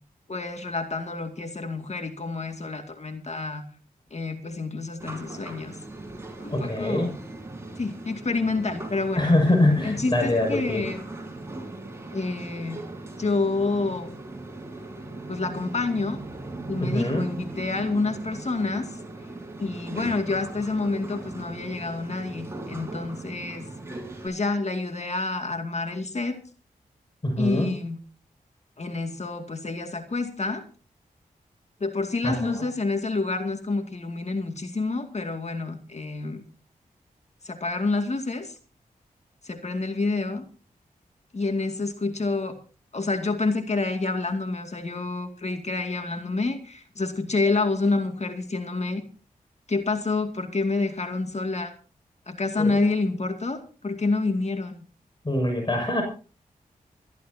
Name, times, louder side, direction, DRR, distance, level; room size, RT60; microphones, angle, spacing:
voice 1, 0.3-3.6 4.1-5.8 6.4-7.1 7.8-9.4 9.8-11.0 12.1-12.8 13.2-14.1 15.3-16.2 16.7-18.9 19.6-23.7 24.2-26.4 27.4-28.0 28.8-30.6 31.8-36.4 37.4-38.5 39.4-40.4 41.3-42.5 42.9-49.0 49.7-51.7 52.3-54.8, left 3 dB, 45° left, 6 dB, 2.3 m, -28 dB
sound 1, 5.0-24.3, right 2 dB, 15° right, 5.1 m, -39 dB
voice 2, 6.5-7.1 9.2-10.8 16.8-17.2 27.2-27.7 32.2-32.6 52.6-52.8 55.2-56.0, left 1 dB, 30° left, 3 dB, 6.8 m, -24 dB
27.5 x 12.0 x 2.8 m, 0.36 s
cardioid pair, 50°, 15 cm